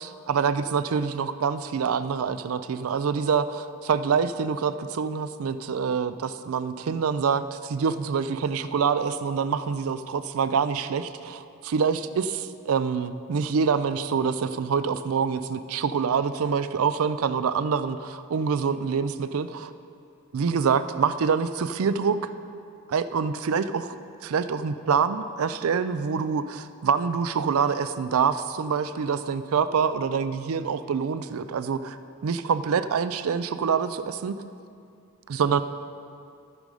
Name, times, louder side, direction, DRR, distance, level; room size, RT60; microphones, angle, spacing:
voice 1, 0.0-19.7 20.3-22.2 22.9-24.0 24.2-32.0 32.2-34.4 35.3-35.6, right 6 dB, 75° right, 12 dB, 0.4 m, -26 dB
14.5 x 5.3 x 4.8 m, 2.4 s
head